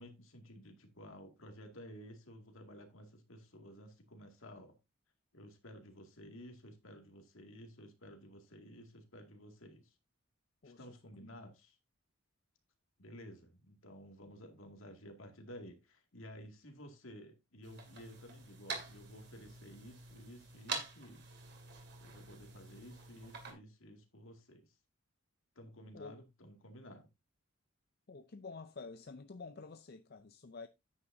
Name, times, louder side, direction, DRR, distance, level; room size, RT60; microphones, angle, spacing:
voice 1, 0.0-4.8 5.3-9.9 10.6-11.8 13.0-21.4 22.0-24.7 25.6-27.1, equal, 70° left, 2.1 m, -53 dB
sound 1, 17.6-23.5, right 4 dB, 50° right, 2.5 m, -46 dB
voice 2, 28.1-30.7, left 4 dB, 45° left, 0.5 m, -49 dB
9.5 x 8.8 x 2.6 m
head